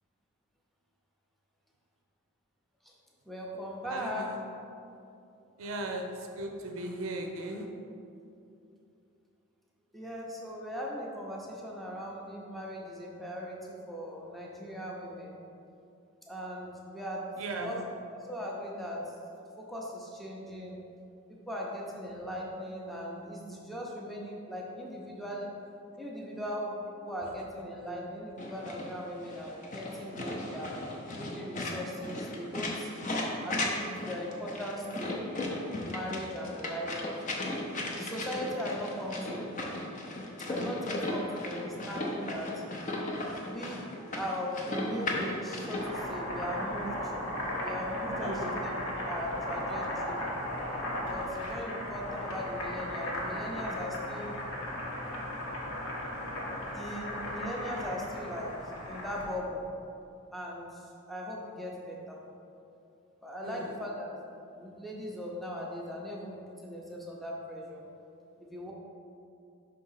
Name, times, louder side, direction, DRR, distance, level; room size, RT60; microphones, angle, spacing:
voice 1, 3.3-4.3 9.9-15.4 16.3-17.2 17.6-17.8 18.1-19.0 19.6-20.8 21.5-25.5 26.0-30.8 31.1-32.9 33.4-35.3 35.8-37.2 37.9-39.6 40.5-42.6 43.4-47.1 47.6-48.7 49.0-50.2 51.0-54.4 56.7-58.5 58.9-59.7 60.3-62.2 63.2-64.1 64.5-67.9 68.4-68.7, equal, ahead, -3 dB, 0.7 m, -39 dB
voice 2, 3.8-4.4 5.6-6.0 6.4-7.7 17.4-17.8 48.2-48.5 63.4-63.7, right 2 dB, 70° right, 2 dB, 0.5 m, -37 dB
sound 1, 28.4-45.8, left 1 dB, 35° left, 0.7 m, -36 dB
Boiling, 45.6-59.4, left 1 dB, 80° left, 1.2 m, -36 dB
5.5 x 3.8 x 5.6 m, 2.7 s
head